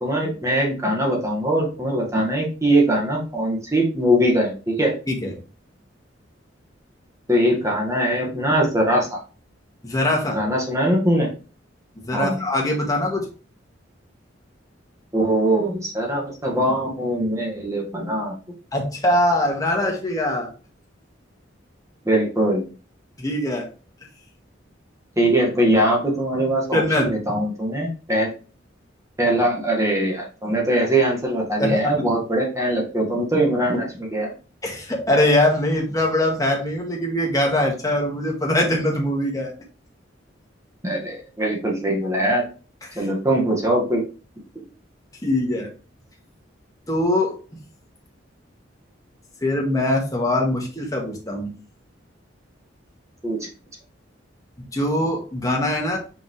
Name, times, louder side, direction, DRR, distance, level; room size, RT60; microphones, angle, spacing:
voice 1, 0.0-4.9 7.3-9.2 10.3-11.3 12.1-12.4 15.1-18.4 22.1-22.6 25.2-28.3 29.2-34.3 40.8-42.4 42.9-44.0 44.6-44.7 53.2-53.5, right 1 dB, 15° right, -1 dB, 1.8 m, -21 dB
voice 2, 9.8-10.4 12.0-13.3 18.7-20.5 23.2-23.7 26.7-27.2 31.6-32.0 34.6-39.5 42.9-43.1 45.2-45.7 46.9-47.3 49.4-51.5 54.6-56.0, left 1 dB, 20° left, 0 dB, 1.8 m, -22 dB
5.8 x 5.3 x 3.3 m, 0.35 s
head